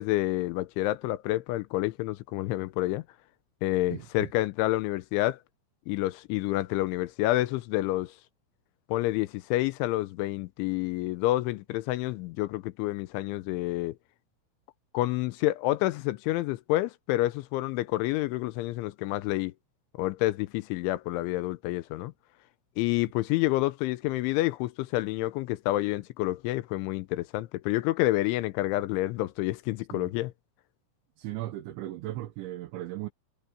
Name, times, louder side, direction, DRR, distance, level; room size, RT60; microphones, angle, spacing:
voice 1, 0.0-3.0 3.6-5.4 5.9-8.1 8.9-14.0 14.9-19.5 20.0-22.1 22.8-30.3, left 17 dB, 80° left, 3.1 m, -28 dB
voice 2, 3.9-4.3 29.9-30.1 31.2-33.1, right 15 dB, 75° right, 3.4 m, -37 dB
omnidirectional pair, 5.5 m